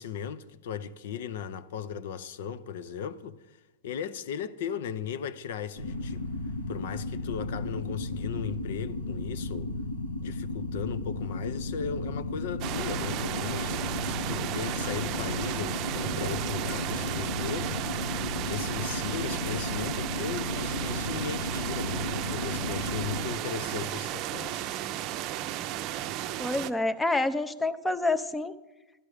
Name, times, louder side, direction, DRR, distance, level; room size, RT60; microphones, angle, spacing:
voice 1, 0.0-3.6 3.8-6.2 6.7-9.7 10.2-17.8 18.5-24.7, left 8 dB, 70° left, 0.7 m, -37 dB
sound 1, 5.8-23.2, left 2 dB, 90° left, 5.0 m, -34 dB
sound 2, 12.6-26.7, right 12 dB, 45° right, 0.6 m, -34 dB
voice 2, 26.4-28.5, left 2 dB, 10° left, 0.6 m, -27 dB
12.5 x 10.5 x 5.0 m
hypercardioid pair, 120°, 0 cm